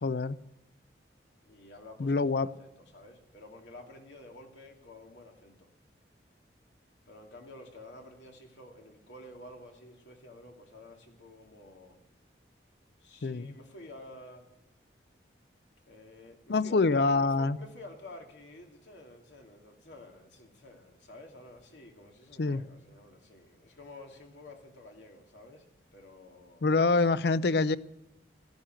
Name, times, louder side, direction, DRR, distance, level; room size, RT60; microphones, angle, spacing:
voice 1, 0.0-0.4 2.0-2.5 13.2-13.5 16.5-17.6 22.4-22.6 26.6-27.8, left 3 dB, 65° left, 17 dB, 0.5 m, -26 dB
voice 2, 1.5-5.7 7.1-12.0 13.0-14.4 15.8-25.7 25.9-26.7, left 2 dB, 80° left, 2 dB, 2.6 m, -51 dB
14.5 x 10.5 x 7.7 m, 0.91 s
head